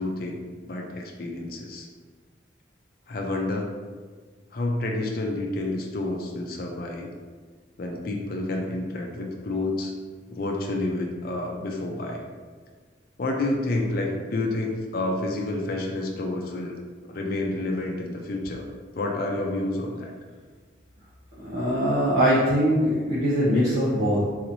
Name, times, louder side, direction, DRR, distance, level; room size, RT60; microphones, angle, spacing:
voice 1, 0.0-1.9 3.1-3.7 4.5-7.1 7.8-9.9 10.3-12.2 13.2-16.7 17.1-18.7 18.9-20.1, left 2 dB, 50° left, 1 dB, 0.4 m, -29 dB
voice 2, 21.4-24.3, equal, 80° right, -10 dB, 0.9 m, -22 dB
4.0 x 3.0 x 2.7 m, 1.5 s
head